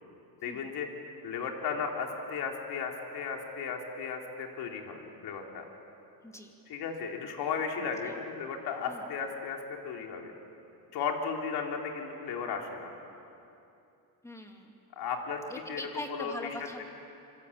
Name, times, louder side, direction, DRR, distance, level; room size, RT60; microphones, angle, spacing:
voice 1, 0.4-0.9 1.2-5.7 6.7-10.3 10.9-12.9 15.0-15.4 15.7-16.3, left 6 dB, 65° left, 2 dB, 3.7 m, -35 dB
voice 2, 14.2-14.8 15.5-16.8, left 1 dB, 5° left, 2 dB, 2.9 m, -42 dB
26.5 x 25.5 x 8.7 m, 2.8 s
cardioid pair, 140°, 41 cm